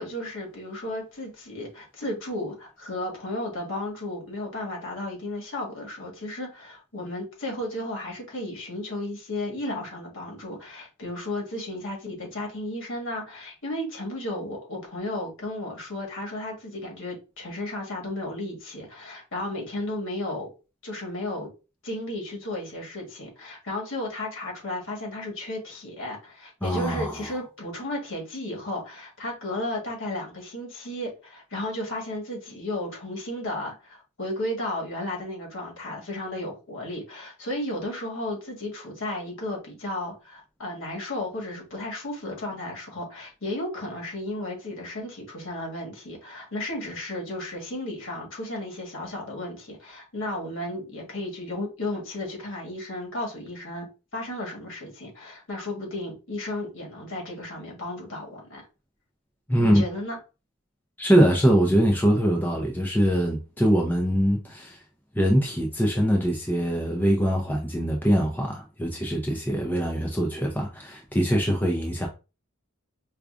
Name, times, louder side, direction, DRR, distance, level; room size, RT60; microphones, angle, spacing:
voice 1, 0.0-20.5 20.8-21.5 21.8-53.9 54.1-58.6 59.6-60.2, left 1 dB, 60° left, 1.4 m, -34 dB
voice 2, 26.6-27.3 59.5-59.8 61.0-64.8 65.1-72.1, equal, 10° left, 0.5 m, -23 dB
4.8 x 2.3 x 2.4 m
head